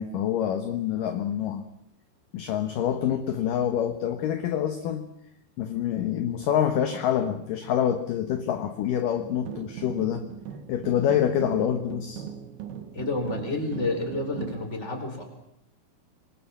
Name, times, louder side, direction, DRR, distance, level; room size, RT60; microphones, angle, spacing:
voice 1, 0.0-1.6 2.3-5.1 5.6-10.3 10.7-12.2, left 9 dB, 65° left, 7 dB, 2.5 m, -26 dB
sound 1, 9.2-14.7, right 9 dB, 75° right, 3.2 m, -39 dB
voice 2, 12.9-15.2, left 2 dB, 15° left, 3 dB, 4.6 m, -29 dB
26.0 x 22.0 x 7.3 m, 0.76 s
omnidirectional pair, 4.8 m